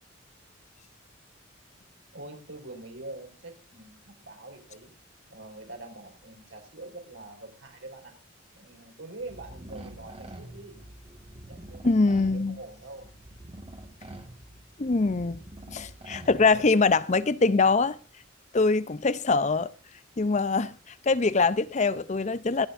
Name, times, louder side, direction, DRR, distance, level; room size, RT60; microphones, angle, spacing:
voice 1, 2.1-4.9 5.3-8.1 8.5-10.8 11.5-11.9 12.3-13.1, right 2 dB, 70° right, 5.0 m, -44 dB
sound 1, 9.2-16.9, right 1 dB, 30° right, 1.7 m, -46 dB
voice 2, 11.8-12.6 14.8-15.4 15.7-18.0 18.5-19.7 20.2-22.7, left 3 dB, 35° left, 0.6 m, -23 dB
26.5 x 9.6 x 2.6 m
head